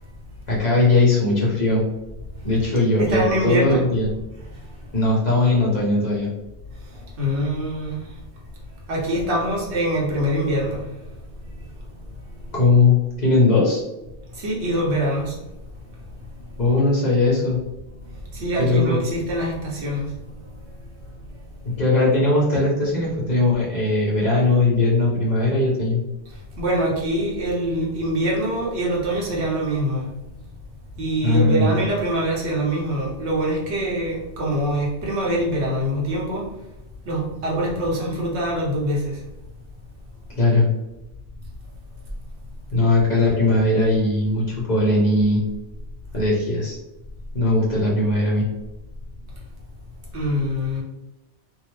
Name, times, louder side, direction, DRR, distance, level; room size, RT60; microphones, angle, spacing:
voice 1, 0.5-1.8 2.4-4.1 4.9-6.3 12.5-13.8 16.6-17.6 18.6-19.0 21.6-26.0 31.2-31.8 40.4-40.7 42.7-45.4 46.1-46.8 47.3-48.4, left 2 dB, 45° left, -5 dB, 0.8 m, -19 dB
voice 2, 3.0-3.8 7.2-8.0 8.9-10.8 14.3-15.3 18.3-20.1 26.6-30.1 31.0-36.4 37.0-39.2 50.1-50.8, right 1 dB, 75° right, -3 dB, 1.1 m, -24 dB
2.7 x 2.0 x 3.1 m, 0.95 s
omnidirectional pair, 1.2 m